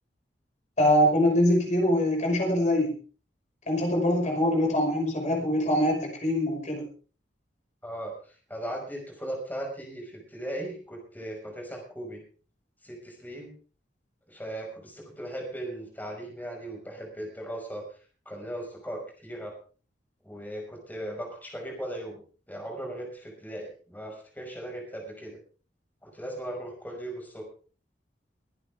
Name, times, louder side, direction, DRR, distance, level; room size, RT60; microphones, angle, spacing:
voice 1, 0.8-2.9 3.7-6.8, left 1 dB, 45° left, 1 dB, 5.6 m, -23 dB
voice 2, 7.8-8.1 8.5-12.2 12.8-13.5 14.3-17.8 18.3-19.5 20.3-22.2 22.5-25.4 26.0-27.5, right 1 dB, 10° left, 1 dB, 5.7 m, -38 dB
23.0 x 11.0 x 3.6 m, 0.39 s
head